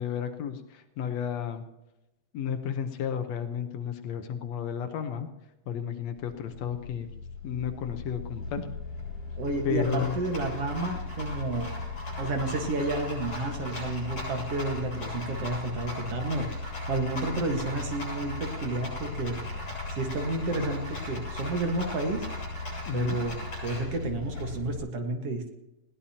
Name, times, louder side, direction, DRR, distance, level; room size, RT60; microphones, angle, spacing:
voice 1, 0.0-1.6 2.3-5.3 5.7-7.1 7.4-8.6 9.6-10.2 22.9-23.2, left 8 dB, 70° left, 7 dB, 2.0 m, -32 dB
Rattle, 6.2-24.8, left 2 dB, 50° left, 8.3 m, -37 dB
voice 2, 9.4-11.7 12.2-19.6 19.9-22.2 22.9-23.4 23.6-25.5, right 2 dB, 55° right, 4 dB, 2.3 m, -31 dB
21.0 x 16.5 x 2.9 m, 0.94 s
omnidirectional pair, 3.4 m